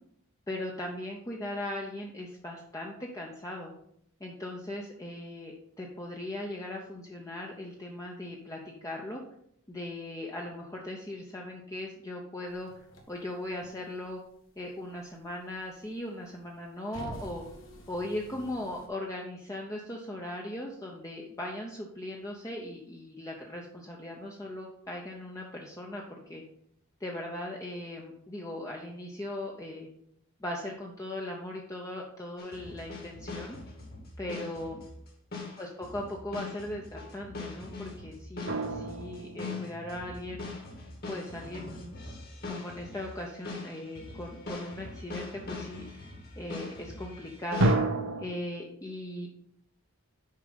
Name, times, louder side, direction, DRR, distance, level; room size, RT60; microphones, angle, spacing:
voice 1, 0.5-3.7 4.2-9.2 9.7-12.7 13.1-14.2 14.6-17.5 17.9-26.4 27.0-29.9 30.4-33.6 34.2-34.9 35.6-40.5 41.1-42.0 42.5-45.9 46.4-47.7 48.2-49.3, left 1 dB, 15° left, -1 dB, 0.7 m, -39 dB
sound 1, 12.5-14.2 14.5-15.9 16.3-18.9, equal, 60° left, 1.6 m, -47 dB
sound 2, 32.4-47.7, left 3 dB, 45° left, 1.8 m, -41 dB
sound 3, 38.5-40.5 47.6-48.3, right 2 dB, 60° right, 0.8 m, -29 dB
6.6 x 5.1 x 5.2 m, 0.70 s
head